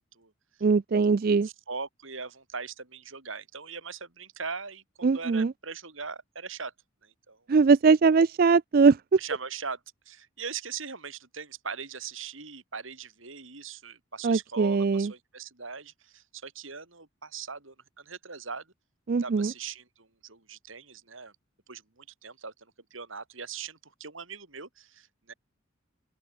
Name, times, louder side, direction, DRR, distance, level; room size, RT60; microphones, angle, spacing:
voice 1, 0.6-1.5 5.0-5.5 7.5-9.0 14.2-15.1 19.1-19.5, right 4 dB, 45° right, 0.4 m, -21 dB
voice 2, 1.3-6.7 7.0-7.4 9.2-9.8 10.1-18.6 19.2-21.3 21.7-22.5 22.9-25.3, right 5 dB, 80° right, 4.4 m, -40 dB
open air
head